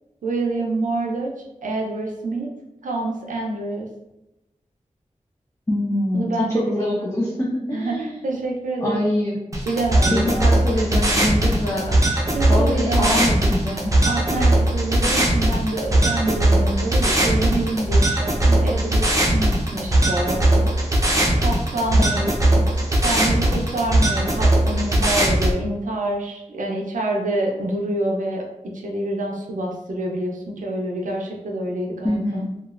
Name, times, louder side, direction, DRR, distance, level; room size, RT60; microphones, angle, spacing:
voice 1, 0.2-1.3 1.6-2.5 2.8-3.9 6.1-6.9 7.7-9.0 9.7-10.4 12.3-13.2 14.0-19.1 19.3-20.7 21.4-22.0 23.0-28.4 28.8-32.4, right 2 dB, 90° right, 0 dB, 0.5 m, -26 dB
voice 2, 5.7-8.2 8.8-9.4 10.1-12.0 12.5-13.9 22.0-22.9 32.0-32.5, left 1 dB, 20° left, -5 dB, 0.5 m, -24 dB
sound 1, 9.5-25.5, right 1 dB, 25° right, 0.6 m, -19 dB
2.9 x 2.4 x 2.4 m, 0.91 s
cardioid pair, 50°, 13 cm